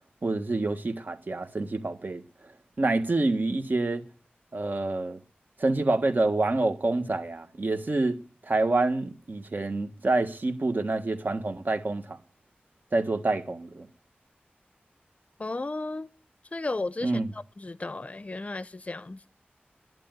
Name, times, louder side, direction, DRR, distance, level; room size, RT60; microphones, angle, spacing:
voice 1, 0.2-2.5 2.8-4.0 4.5-5.2 5.6-12.2 12.9-13.9 17.0-17.3, right 2 dB, 55° right, 1.5 m, -27 dB
voice 2, 15.4-16.1 16.5-19.2, left 2 dB, 35° left, 0.6 m, -34 dB
11.5 x 9.3 x 9.3 m
wide cardioid pair, 80°, 4 cm